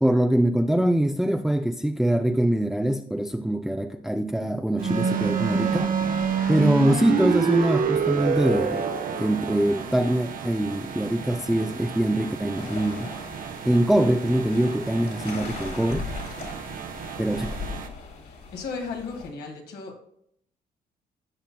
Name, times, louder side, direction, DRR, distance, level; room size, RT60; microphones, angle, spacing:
voice 1, 0.0-5.9 6.5-8.9 9.2-13.1 13.6-16.1 17.2-17.5, right 1 dB, ahead, 5 dB, 0.5 m, -23 dB
sound 1, 4.8-17.9, right 6 dB, 60° right, 1.0 m, -29 dB
sound 2, 12.6-19.3, left 4 dB, 65° left, 2.8 m, -39 dB
voice 2, 18.2-20.0, left 4 dB, 80° left, 2 dB, 1.9 m, -35 dB
16.5 x 5.6 x 2.2 m, 0.71 s
cardioid pair, 90°, 17 cm